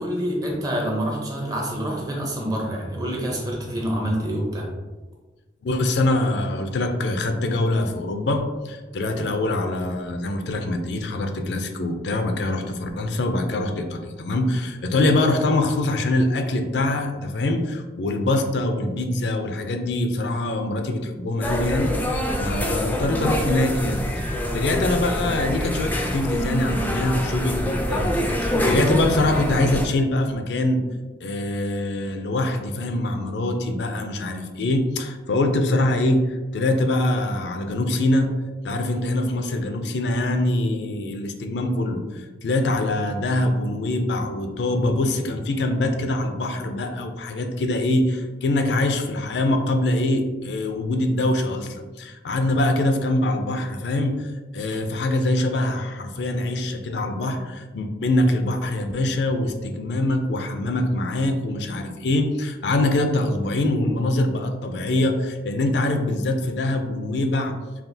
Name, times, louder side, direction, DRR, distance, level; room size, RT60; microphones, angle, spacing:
voice 1, 0.0-4.7, equal, 20° right, -1 dB, 0.7 m, -27 dB
voice 2, 5.6-30.8 31.2-38.3 38.6-67.5, left 2 dB, 70° left, 5 dB, 0.4 m, -24 dB
sound 1, 21.4-29.9, equal, 10° left, 0.4 m, -25 dB
5.6 x 2.4 x 2.6 m, 1.2 s
head